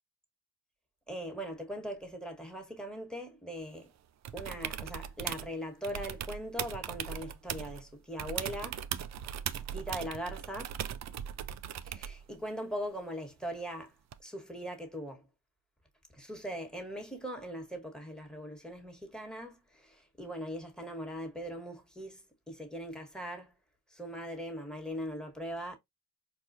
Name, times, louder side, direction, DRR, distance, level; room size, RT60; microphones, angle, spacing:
voice 1, 1.1-3.9 4.3-8.9 9.7-10.8 11.8-13.9 14.2-15.3 16.1-23.5 23.9-25.8, equal, ahead, 1.4 m, -40 dB
sound 1, 4.2-5.5 5.8-7.8 8.2-12.2 14.1-14.2, right 9 dB, 40° right, 0.4 m, -39 dB
4.4 x 2.4 x 2.7 m
hypercardioid pair, 55°, 45 cm